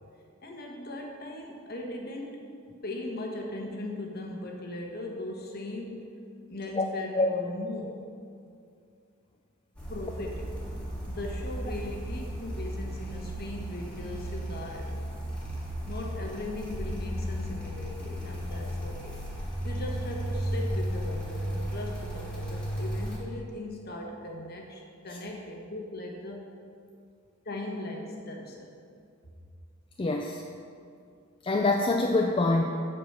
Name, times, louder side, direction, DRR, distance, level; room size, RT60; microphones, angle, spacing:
voice 1, 0.4-2.4 2.8-6.0 6.5-7.9 9.9-10.5 11.1-14.9 15.9-19.2 19.6-26.4 27.4-28.7, left 1 dB, 50° left, 1 dB, 1.2 m, -38 dB
sound 1, 9.8-23.2, equal, 5° left, 1.7 m, -34 dB
voice 2, 30.0-30.4 31.4-32.6, left 2 dB, 25° left, 2 dB, 0.4 m, -25 dB
7.9 x 5.0 x 6.7 m, 2.4 s
head